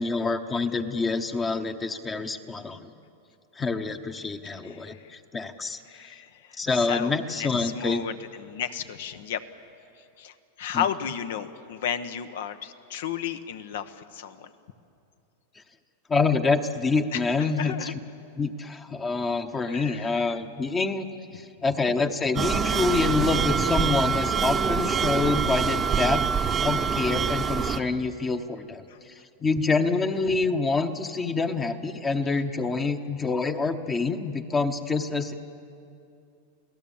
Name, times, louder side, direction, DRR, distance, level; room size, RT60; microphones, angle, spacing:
voice 1, 0.0-2.9 3.6-5.8 6.6-8.0 10.7-10.8 16.1-17.9 18.4-21.1 21.3-26.2 26.6-29.1 29.4-35.3, left 4 dB, 15° left, 7 dB, 0.9 m, -26 dB
voice 2, 4.6-5.1 5.9-9.4 10.2-14.5 17.1-17.2 17.6-17.9 19.7-20.4 28.9-29.0, left 9 dB, 75° left, 10 dB, 1.1 m, -33 dB
sound 1, 22.4-27.8, right 6 dB, 20° right, 0.8 m, -25 dB
29.0 x 17.0 x 7.2 m, 2.6 s
supercardioid pair, 140°, 0 cm